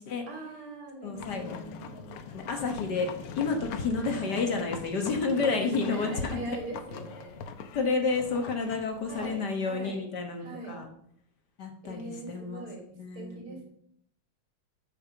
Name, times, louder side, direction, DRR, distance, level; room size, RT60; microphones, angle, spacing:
voice 1, 0.3-2.1 3.9-4.5 5.4-7.4 9.1-10.0 10.4-10.8 11.8-12.8 13.1-13.6, right 2 dB, 80° right, 0 dB, 3.9 m, -41 dB
voice 2, 1.0-1.6 2.3-3.1 3.4-6.6 7.7-10.9 11.6-12.7 13.0-13.6, left 4 dB, 55° left, 4 dB, 1.7 m, -30 dB
sound 1, 1.2-9.4, left 6 dB, 90° left, 1.8 m, -42 dB
9.0 x 5.8 x 7.0 m, 0.68 s
omnidirectional pair, 2.4 m